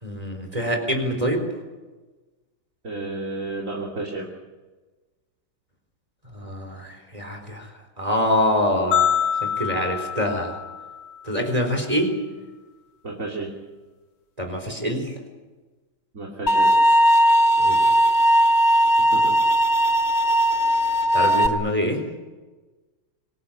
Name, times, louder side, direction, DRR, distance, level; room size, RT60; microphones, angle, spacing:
voice 1, 0.0-1.4 6.3-9.1 9.4-10.6 11.2-12.1 14.4-15.2 17.6-17.9 21.1-22.0, equal, 15° right, 3 dB, 4.1 m, -25 dB
voice 2, 2.8-4.3 13.0-13.5 16.1-16.8 19.1-19.4, right 2 dB, 35° right, -1 dB, 3.3 m, -31 dB
sound 1, 8.9-11.3, left 9 dB, 90° left, 3.7 m, -25 dB
sound 2, 16.5-21.5, equal, 45° left, 0.9 m, -18 dB
26.0 x 18.5 x 8.7 m, 1.2 s
omnidirectional pair, 2.3 m